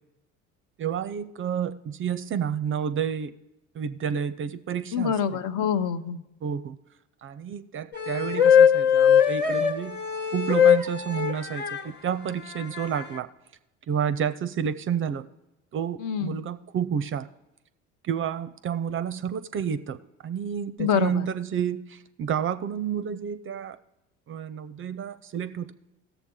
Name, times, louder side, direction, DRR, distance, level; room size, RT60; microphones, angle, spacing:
voice 1, 0.8-3.3 3.7-5.1 6.4-6.8 7.2-10.0 10.3-13.3 13.9-15.3 15.7-17.3 18.0-20.0 20.2-23.8 24.3-25.7, right 8 dB, 35° right, 14 dB, 0.4 m, -30 dB
voice 2, 4.9-6.2 16.0-16.4 20.8-21.3, left 7 dB, 50° left, 11 dB, 0.7 m, -26 dB
sound 1, 7.9-11.8 12.6-13.2, left 8 dB, 25° left, 1.2 m, -20 dB
16.5 x 6.9 x 3.7 m, 0.95 s
hypercardioid pair, 70°, 39 cm